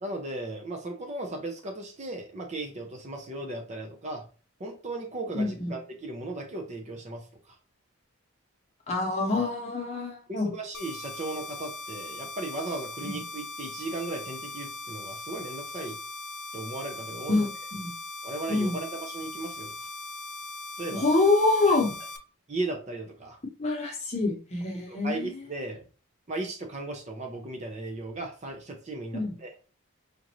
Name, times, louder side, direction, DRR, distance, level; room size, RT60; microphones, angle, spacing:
voice 1, 0.0-4.2 4.6-7.6 10.3-16.0 16.5-17.5 18.2-19.9 20.8-21.2 22.5-23.4 24.9-25.9 26.3-29.5, right 2 dB, 30° right, 3 dB, 0.5 m, -36 dB
voice 2, 5.3-5.7 8.9-10.5 13.0-13.2 17.3-17.9 18.5-18.8 21.0-21.9 23.6-25.3 29.1-29.3, left 3 dB, 30° left, 0 dB, 0.9 m, -26 dB
sound 1, 10.7-22.2, left 2 dB, 90° left, 0.6 m, -40 dB
5.1 x 2.5 x 3.0 m, 0.36 s
head